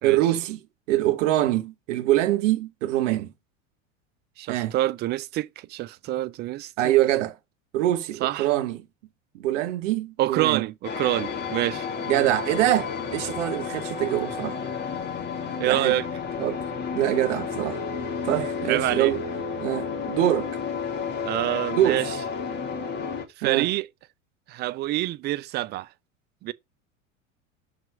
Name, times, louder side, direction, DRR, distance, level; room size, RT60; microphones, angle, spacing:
voice 1, 0.0-0.6 0.9-3.3 4.5-4.7 6.8-7.4 7.7-8.8 9.3-10.6 12.1-14.6 15.6-16.0 16.4-16.6 16.9-17.8 18.2-19.2 19.6-20.6 21.8-22.0 23.4-23.7, right 14 dB, 65° right, 1.0 m, -24 dB
voice 2, 4.4-6.7 8.2-8.5 10.2-11.9 15.6-16.1 18.7-19.1 21.3-22.1 23.4-23.9 24.5-25.9 26.4-26.5, right 15 dB, 30° right, 0.3 m, -26 dB
sound 1, 10.8-23.3, left 5 dB, 25° left, 2.3 m, -31 dB
5.9 x 4.9 x 5.1 m
hypercardioid pair, 80°, 40 cm